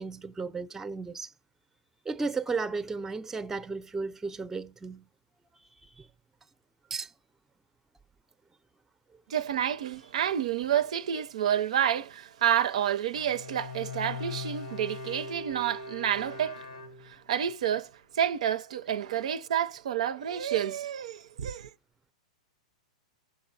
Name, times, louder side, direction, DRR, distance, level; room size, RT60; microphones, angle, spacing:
voice 1, 0.0-1.3 2.1-5.1 5.8-6.1 6.9-7.1, right 4 dB, 10° right, 0.5 m, -34 dB
voice 2, 9.3-16.6 17.0-21.7, right 10 dB, 70° right, 0.4 m, -29 dB
Bowed string instrument, 13.1-17.5, left 3 dB, 90° left, 0.9 m, -41 dB
16.0 x 5.8 x 2.7 m
hypercardioid pair, 105°, 4 cm